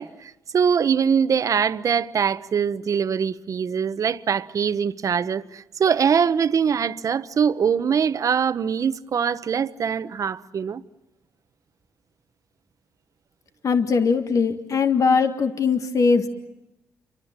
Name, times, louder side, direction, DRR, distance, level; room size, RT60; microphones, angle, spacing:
voice 1, 0.0-10.8, right 7 dB, 55° right, 1.1 m, -23 dB
voice 2, 13.6-16.3, left 5 dB, 50° left, 1.8 m, -20 dB
29.5 x 24.0 x 7.6 m
cardioid pair, 75°, 7 cm